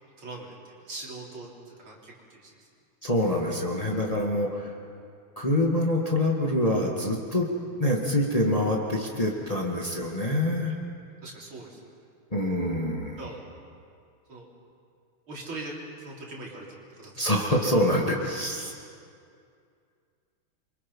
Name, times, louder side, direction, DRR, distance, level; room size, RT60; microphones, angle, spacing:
voice 1, 0.2-0.5 0.9-2.5 3.9-4.0 9.8-10.1 11.2-11.8 13.2-13.4 14.3-14.5 15.3-15.7 16.0-17.1, right 2 dB, 75° right, -3 dB, 4.5 m, -41 dB
voice 2, 3.0-4.7 5.4-7.5 7.8-10.8 12.3-13.2 17.2-18.7, left 1 dB, 20° left, -1 dB, 2.0 m, -25 dB
27.5 x 24.0 x 5.6 m, 2.4 s
omnidirectional pair, 2.3 m